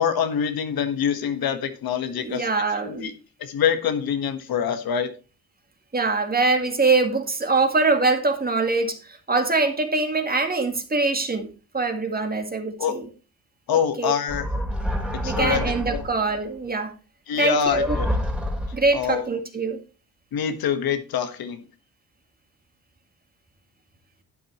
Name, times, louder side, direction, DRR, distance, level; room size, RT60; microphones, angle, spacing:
voice 1, 0.0-2.5 2.8-3.1 3.4-5.1 12.8-13.0 13.7-14.4 15.2-16.0 17.3-18.1 18.9-19.3 20.3-21.6, left 8 dB, 75° left, 1.6 m, -25 dB
voice 2, 2.2-3.1 5.9-9.0 9.3-13.1 13.7-14.1 15.2-16.9 17.4-17.9 18.7-19.8, right 3 dB, 25° right, 2.0 m, -23 dB
sound 1, 14.3-16.3 17.7-19.0, equal, 5° right, 3.0 m, -28 dB
11.5 x 8.7 x 3.1 m
cardioid pair, 90°, 37 cm